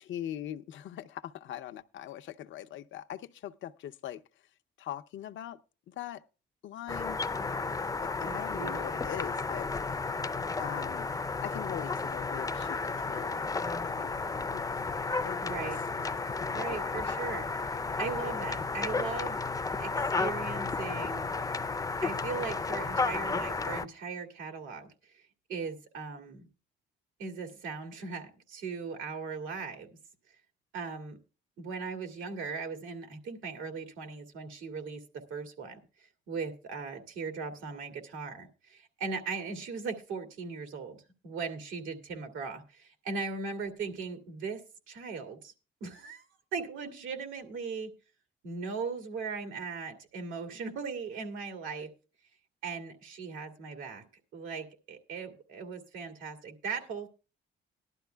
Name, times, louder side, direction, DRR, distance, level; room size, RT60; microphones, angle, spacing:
voice 1, 0.0-4.2 4.8-5.6 5.9-6.2 6.6-7.2 7.9-9.7 10.6-11.1 11.4-14.2 14.5-14.8 15.2-15.6 16.5-16.6, left 11 dB, 75° left, 0.7 m, -41 dB
sound 1, 6.9-23.8, left 4 dB, 20° left, 0.5 m, -33 dB
voice 2, 8.2-9.0 15.4-15.8 16.5-19.4 19.8-21.3 22.0-25.2 25.5-26.5 27.2-29.9 30.7-31.2 31.6-35.0 35.3-41.0 41.2-44.6 44.9-45.5 45.8-47.9 48.4-51.9 52.6-54.1 54.3-57.1, right 5 dB, 85° right, 2.3 m, -38 dB
18.5 x 11.5 x 2.3 m
cardioid pair, 90°, 20 cm